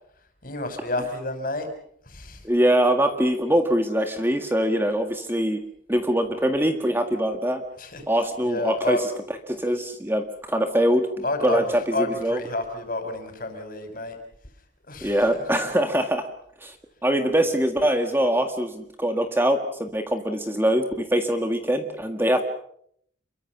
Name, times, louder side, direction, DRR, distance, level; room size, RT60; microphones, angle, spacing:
voice 1, 0.4-1.7 2.0-2.4 7.8-9.0 9.7-9.8 11.2-14.2 14.9-15.7, left 2 dB, 45° left, 7 dB, 5.8 m, -30 dB
voice 2, 2.4-5.6 5.9-7.6 8.1-9.1 9.5-12.4 15.0-16.3 16.6-16.8 17.0-22.4, right 1 dB, 10° right, 6 dB, 1.8 m, -23 dB
29.0 x 22.5 x 6.0 m, 0.67 s
head